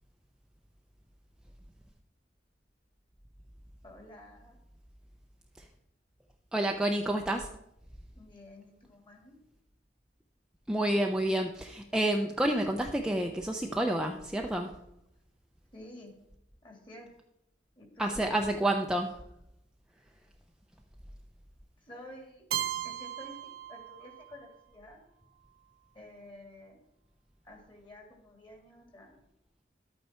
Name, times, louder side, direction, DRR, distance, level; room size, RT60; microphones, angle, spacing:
voice 1, 3.8-4.6 8.1-9.3 15.7-16.1 16.6-17.1 17.8-18.3 21.8-22.4 22.8-25.0 25.9-26.8 27.4-29.2, left 1 dB, 30° left, 2 dB, 2.5 m, -51 dB
voice 2, 6.5-7.5 10.7-14.8 18.0-19.1, right 1 dB, 5° right, 2 dB, 0.5 m, -29 dB
Keyboard (musical), 22.5-24.4, right 11 dB, 55° right, 0.7 m, -36 dB
12.0 x 8.6 x 4.4 m, 0.83 s
head